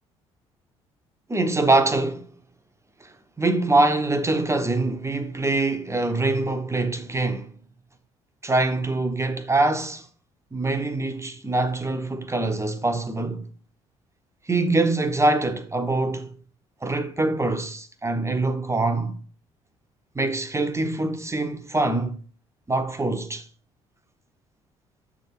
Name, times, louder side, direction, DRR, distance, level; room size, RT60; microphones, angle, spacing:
voice 1, 1.3-2.3 3.0-3.1 3.4-7.5 8.4-10.1 10.5-13.5 14.5-16.4 16.8-19.2 20.1-22.2 22.7-23.4, right 2 dB, 15° right, 1.1 m, -24 dB
8.0 x 3.7 x 5.8 m
figure-of-eight pair, 50°, 17 cm